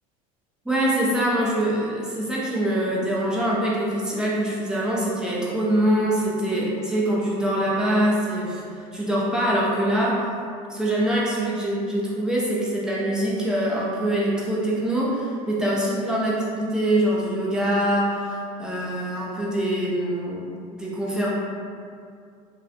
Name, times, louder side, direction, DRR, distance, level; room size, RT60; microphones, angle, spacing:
voice 1, 0.7-10.2 10.7-21.3, right 1 dB, 5° right, -6 dB, 0.5 m, -24 dB
2.5 x 2.1 x 2.6 m, 2.3 s
supercardioid pair, 125°, 17 cm